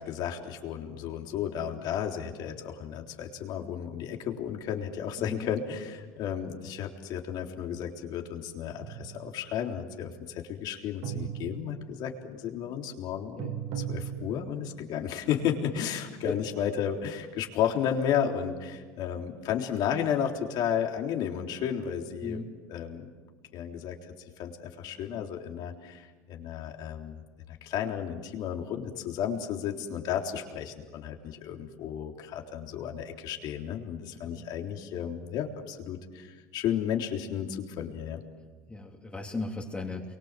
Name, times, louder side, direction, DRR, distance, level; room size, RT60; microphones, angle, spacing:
voice 1, 0.0-22.4 22.7-23.1 23.5-24.0 24.4-27.2 27.6-38.2, left 9 dB, 55° left, 2 dB, 3.7 m, -33 dB
voice 2, 5.2-5.5 13.4-13.5 16.2-16.3 22.2-22.5 34.3-34.4 38.7-40.0, left 2 dB, 15° left, 0 dB, 3.2 m, -36 dB
sound 1, 8.8-9.4 11.0-12.0 13.4-14.7, right 9 dB, 70° right, 5.7 m, -37 dB
29.5 x 23.5 x 7.6 m, 1.4 s
supercardioid pair, 110°, 8 cm